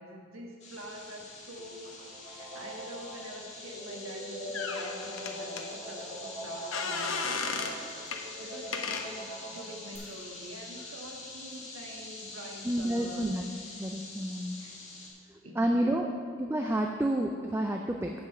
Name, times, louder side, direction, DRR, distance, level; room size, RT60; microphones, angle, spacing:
voice 1, 0.0-13.3 14.6-14.8 15.4-16.1, equal, 85° right, 0 dB, 1.5 m, -45 dB
sound 1, 0.6-15.1, left 2 dB, 35° left, 1.8 m, -45 dB
sound 2, 1.5-10.0, right 1 dB, 35° right, 2.2 m, -42 dB
sound 3, 4.5-5.6 6.7-7.8 8.1-8.2 8.7-9.1, left 5 dB, 75° left, 0.8 m, -34 dB
voice 2, 12.6-13.4 13.8-14.6 15.6-16.1 16.4-18.1, right 1 dB, 10° right, 2 dB, 0.4 m, -29 dB
7.9 x 5.1 x 7.2 m, 2.3 s
head